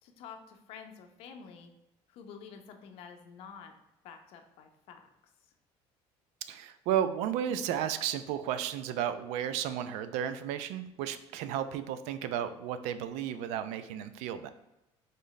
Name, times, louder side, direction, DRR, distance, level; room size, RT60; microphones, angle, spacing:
voice 1, 0.0-1.7 2.1-3.7 4.0-5.0, left 6 dB, 60° left, 5 dB, 0.6 m, -49 dB
voice 2, 6.5-14.5, right 10 dB, 85° right, 11 dB, 0.4 m, -33 dB
3.9 x 3.1 x 3.9 m, 0.90 s
cardioid pair, 180°, 11 cm